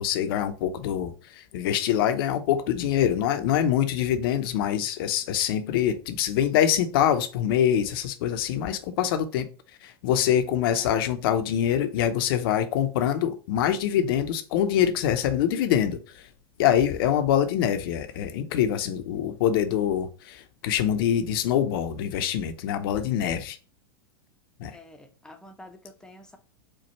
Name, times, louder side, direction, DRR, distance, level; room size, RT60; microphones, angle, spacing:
voice 1, 0.0-9.5 9.8-16.2 16.6-23.6 24.6-24.7, left 10 dB, 60° left, 0.7 m, -25 dB
voice 2, 24.7-26.4, left 1 dB, 5° left, 0.7 m, -48 dB
4.5 x 2.4 x 4.1 m
hypercardioid pair, 100°, 13 cm